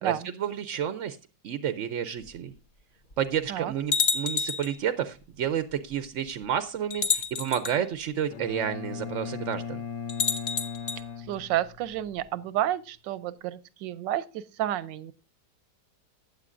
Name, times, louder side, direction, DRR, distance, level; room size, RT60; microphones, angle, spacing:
voice 1, 0.4-1.2 1.4-2.5 3.2-9.8, right 9 dB, 65° right, 12 dB, 0.7 m, -30 dB
sound 1, 2.3-2.4 3.1-3.2 3.9-4.8 5.9-6.0 6.9-7.8 10.1-11.0, left 5 dB, 55° left, 0.5 m, -28 dB
Bowed string instrument, 8.3-12.2, left 7 dB, 70° left, 1.8 m, -38 dB
voice 2, 11.2-15.1, right 12 dB, 90° right, 17 dB, 1.4 m, -30 dB
14.5 x 9.1 x 2.5 m, 0.31 s
omnidirectional pair, 1.9 m